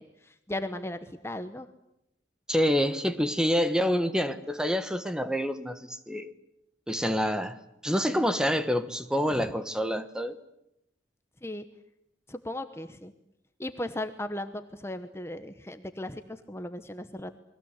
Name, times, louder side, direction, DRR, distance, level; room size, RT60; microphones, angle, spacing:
voice 1, 0.0-1.7 9.3-9.5 11.4-11.6 12.3-13.1 13.6-17.3, left 1 dB, 15° left, 1.0 m, -37 dB
voice 2, 2.5-6.3 6.9-7.6 7.8-10.4, equal, 5° right, 1.2 m, -27 dB
29.0 x 21.5 x 8.1 m
head